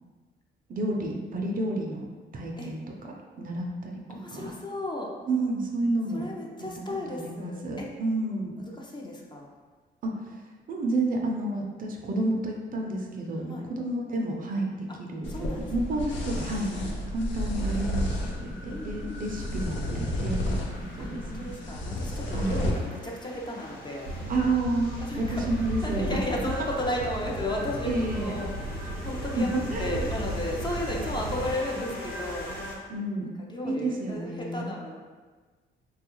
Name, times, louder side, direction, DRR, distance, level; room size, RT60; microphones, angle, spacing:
voice 1, 0.7-4.5 5.3-6.3 6.6-6.7 7.1-8.6 10.0-10.4 10.7-21.5 22.3-22.7 24.3-24.9 25.2-26.2 26.6-26.7 27.8-28.4 29.4-30.1 32.9-33.3 33.6-34.7, right 2 dB, 45° right, 0 dB, 0.5 m, -30 dB
voice 2, 4.1-5.1 6.1-7.9 8.6-9.5 13.5-13.7 15.3-15.7 18.7-19.5 21.0-24.1 25.0-25.5 25.8-32.5 33.5-35.0, left 1 dB, 20° left, -2 dB, 0.5 m, -34 dB
sound 1, 15.2-22.7, equal, 70° left, 0.6 m, -32 dB
sound 2, 17.6-32.8, left 1 dB, 50° left, 1.0 m, -43 dB
sound 3, 24.1-31.5, right 1 dB, 90° right, 0.6 m, -35 dB
3.4 x 2.3 x 2.9 m, 1.4 s
cardioid pair, 90°, 20 cm